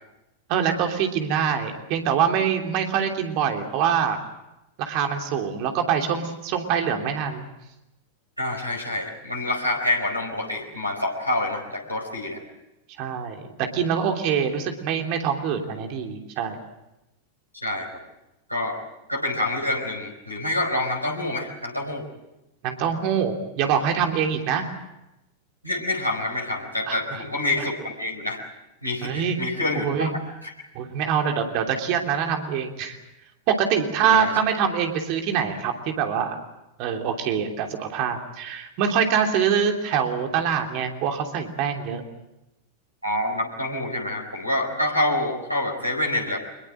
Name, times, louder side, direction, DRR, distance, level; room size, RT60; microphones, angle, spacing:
voice 1, 0.5-4.2 4.8-7.4 13.0-16.6 22.6-24.7 26.9-27.0 29.0-29.4 29.7-30.1 30.7-33.0 33.5-36.4 36.8-42.0, right 7 dB, 45° right, 4 dB, 3.1 m, -24 dB
voice 2, 8.4-12.4 17.6-17.9 18.5-18.8 19.1-22.1 25.6-28.4 28.8-30.1 30.4-30.5 34.1-34.3 43.0-46.4, left 1 dB, 90° right, 5 dB, 4.6 m, -27 dB
24.5 x 22.0 x 7.6 m, 0.93 s
figure-of-eight pair, 90°, 0 cm